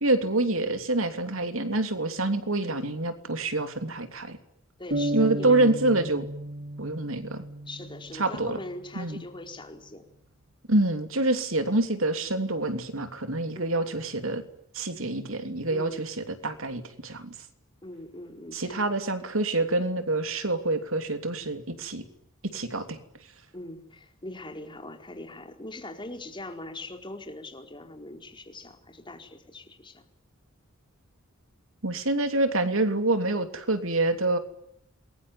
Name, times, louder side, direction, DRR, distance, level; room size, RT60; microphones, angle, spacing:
voice 1, 0.0-4.4 5.1-6.3 6.8-7.4 8.1-8.6 8.9-9.2 10.7-14.4 14.7-17.3 18.5-22.0 22.4-23.0 31.8-34.4, right 2 dB, 70° right, 8 dB, 3.1 m, -26 dB
voice 2, 4.8-5.7 7.6-10.0 13.5-13.8 15.7-16.0 17.8-18.8 23.5-30.0, left 1 dB, 25° left, 5 dB, 4.5 m, -41 dB
sound 1, 4.9-8.7, right 1 dB, 50° right, 2.2 m, -34 dB
28.0 x 22.0 x 9.6 m, 0.76 s
head